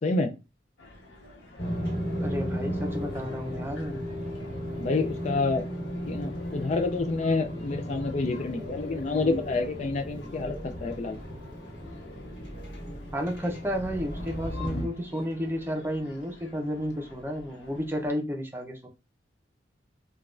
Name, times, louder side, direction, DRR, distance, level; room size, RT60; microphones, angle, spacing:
voice 1, 0.0-0.3 4.8-5.6 6.1-11.2 14.7-14.9, left 3 dB, 40° left, 0.4 m, -28 dB
sound 1, 0.8-18.1, left 2 dB, 85° left, 1.0 m, -50 dB
sound 2, 1.6-14.8, equal, 65° left, 1.6 m, -35 dB
voice 2, 2.1-4.0 13.1-18.9, equal, 15° right, 0.6 m, -32 dB
5.0 x 2.3 x 2.4 m
head